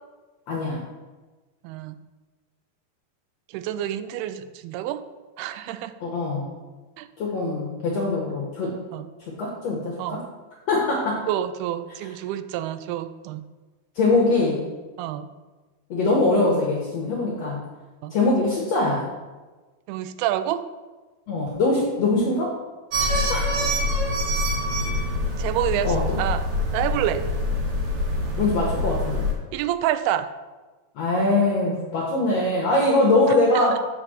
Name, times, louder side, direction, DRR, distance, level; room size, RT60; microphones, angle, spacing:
voice 1, 0.5-0.8 6.0-6.5 7.2-8.8 9.2-10.2 10.7-11.3 12.0-12.1 13.9-14.6 15.9-17.6 18.1-19.1 21.3-22.6 23.3-23.4 25.8-26.2 28.4-29.3 30.9-33.8, left 2 dB, 70° left, -2 dB, 1.6 m, -22 dB
voice 2, 1.6-2.0 3.5-5.0 5.4-5.9 7.0-7.1 8.9-9.1 10.0-10.2 11.3-13.4 15.0-15.3 18.0-18.1 19.9-20.7 25.4-26.5 26.7-27.3 29.5-30.3 33.5-33.8, right 11 dB, 90° right, 12 dB, 2.5 m, -28 dB
Squeaking ventilator in a window, 22.9-29.3, left 1 dB, 55° right, 2.4 m, -25 dB
7.5 x 5.0 x 6.3 m, 1.3 s
omnidirectional pair, 4.4 m